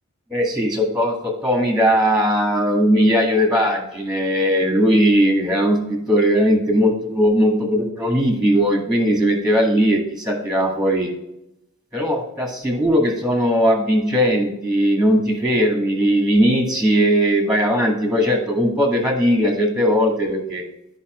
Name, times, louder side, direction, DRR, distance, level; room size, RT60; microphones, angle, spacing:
voice 1, 0.3-11.1 11.9-20.6, equal, 5° right, 1 dB, 1.8 m, -18 dB
13.0 x 5.4 x 3.1 m, 0.83 s
head